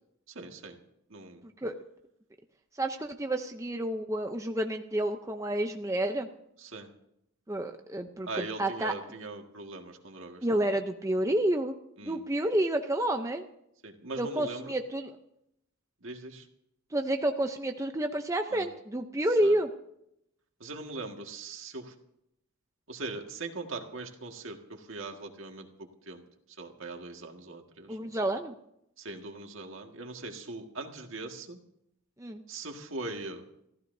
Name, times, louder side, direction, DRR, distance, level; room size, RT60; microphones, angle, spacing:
voice 1, 0.4-0.8 1.1-1.4 6.6-6.9 8.3-10.4 12.0-12.2 13.8-14.7 16.0-16.4 18.5-18.7 19.4-19.6 20.6-21.9 22.9-25.7 26.1-26.2 26.6-28.0 29.0-31.6 32.5-33.4, right 3 dB, 65° right, 3 dB, 1.9 m, -40 dB
voice 2, 2.8-6.3 7.5-8.9 10.4-11.7 12.0-13.4 14.2-15.2 16.9-19.7 27.9-28.5 32.2-32.4, right 1 dB, 15° right, 5 dB, 0.6 m, -29 dB
28.0 x 15.0 x 2.7 m, 0.78 s
head